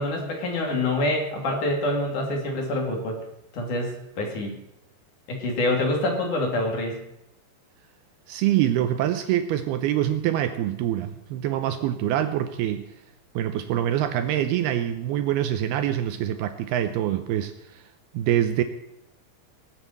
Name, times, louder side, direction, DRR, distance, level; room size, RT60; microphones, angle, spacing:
voice 1, 0.0-3.2 3.5-4.5 5.3-7.0, left 1 dB, 50° left, 2 dB, 3.6 m, -26 dB
voice 2, 8.3-12.9 13.4-17.8 18.1-18.6, right 11 dB, 80° right, 9 dB, 2.5 m, -25 dB
19.5 x 8.1 x 7.9 m, 0.86 s
omnidirectional pair, 5.0 m